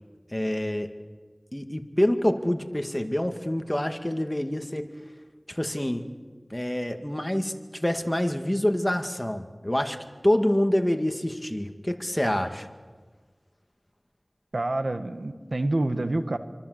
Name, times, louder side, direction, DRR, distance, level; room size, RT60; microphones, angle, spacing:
voice 1, 0.3-0.9 1.5-4.9 5.5-6.1 6.5-10.0 10.2-12.7, left 1 dB, 20° left, 6 dB, 2.1 m, -26 dB
voice 2, 14.5-16.4, right 2 dB, 85° right, 8 dB, 1.6 m, -27 dB
28.0 x 24.5 x 8.0 m, 1.5 s
wide cardioid pair, 45°, 0 cm